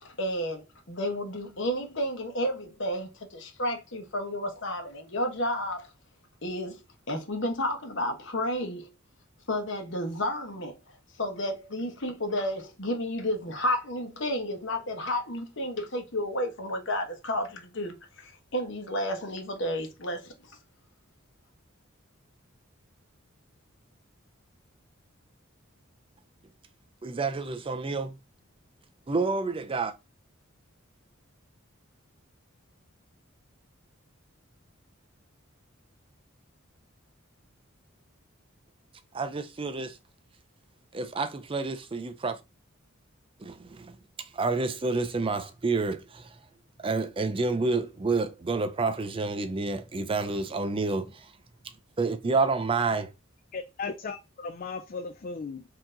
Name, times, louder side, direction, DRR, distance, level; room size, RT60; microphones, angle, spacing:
voice 1, 0.0-5.9 6.4-6.8 7.1-8.9 9.5-10.8 11.2-20.3, left 1 dB, 60° left, 1.2 m, -31 dB
voice 2, 27.0-28.1 29.1-29.9 39.1-39.9 40.9-42.4 43.5-43.6 44.4-46.0 46.8-51.0 52.0-53.1, right 3 dB, 25° right, 0.4 m, -28 dB
voice 3, 53.5-55.6, left 4 dB, 40° left, 0.4 m, -36 dB
4.5 x 2.9 x 3.8 m
head